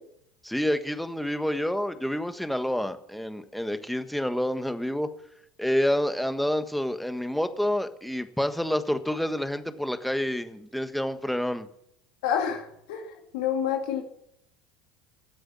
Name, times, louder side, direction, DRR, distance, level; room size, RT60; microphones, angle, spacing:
voice 1, 0.4-5.1 5.6-11.7, left 1 dB, ahead, 9 dB, 1.4 m, -28 dB
voice 2, 12.2-14.0, left 8 dB, 70° left, 2 dB, 2.4 m, -28 dB
19.5 x 7.8 x 8.4 m, 0.77 s
hypercardioid pair, 85°, 4 cm